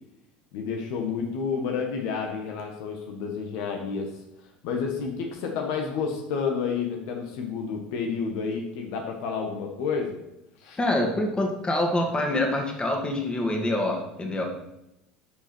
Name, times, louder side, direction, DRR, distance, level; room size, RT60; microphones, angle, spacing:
voice 1, 0.5-4.1 4.6-10.2 10.6-10.8, left 5 dB, 65° left, 2 dB, 1.5 m, -30 dB
voice 2, 10.8-14.4, left 1 dB, 20° left, 2 dB, 2.3 m, -26 dB
10.5 x 5.2 x 4.6 m, 0.87 s
hypercardioid pair, 80°, 5 cm